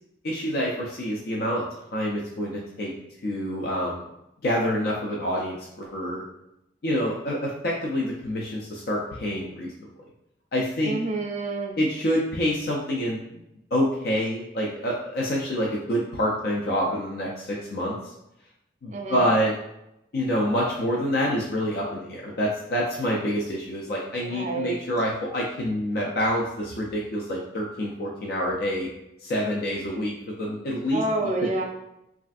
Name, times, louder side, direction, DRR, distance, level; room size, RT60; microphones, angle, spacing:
voice 1, 0.2-1.6 1.9-2.9 3.2-4.0 4.4-6.2 6.8-9.7 10.5-11.0 11.8-13.4 13.7-18.0 18.8-19.5 20.1-28.9 29.2-31.0 31.4-31.6, equal, 55° left, -3 dB, 0.4 m, -27 dB
voice 2, 10.8-11.8 18.9-19.3 24.1-24.8 30.9-31.6, right 2 dB, 40° right, 2 dB, 0.4 m, -28 dB
3.2 x 2.4 x 2.4 m, 0.85 s
head